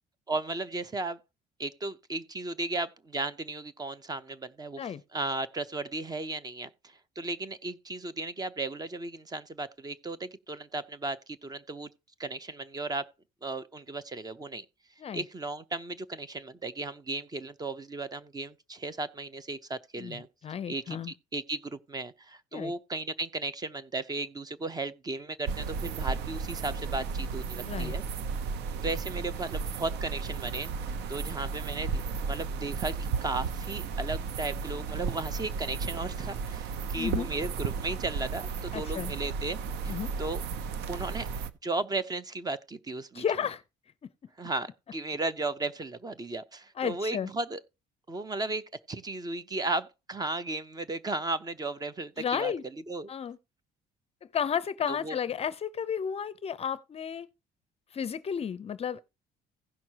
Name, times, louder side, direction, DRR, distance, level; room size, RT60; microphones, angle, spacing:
voice 1, 0.3-1.2 1.6-4.8 5.1-11.9 12.2-13.1 13.4-14.7 15.1-20.3 20.7-28.0 28.8-32.0 32.3-39.6 39.8-39.9 40.2-40.4 40.9-41.3 41.6-43.2 44.4-47.6 48.1-52.5 52.9-53.1 54.9-55.2, right 2 dB, 25° right, 0.7 m, -35 dB
voice 2, 20.0-21.1 22.5-22.7 27.7-27.9 36.9-37.3 38.7-39.1 39.9-40.1 43.1-43.6 44.0-44.1 46.8-47.3 52.2-52.6 53.1-53.4 54.3-57.3 57.9-59.0, left 8 dB, 35° left, 0.5 m, -32 dB
sound 1, 25.5-41.5, right 5 dB, 80° right, 0.7 m, -34 dB
16.0 x 6.0 x 2.9 m
cardioid pair, 110°, 17 cm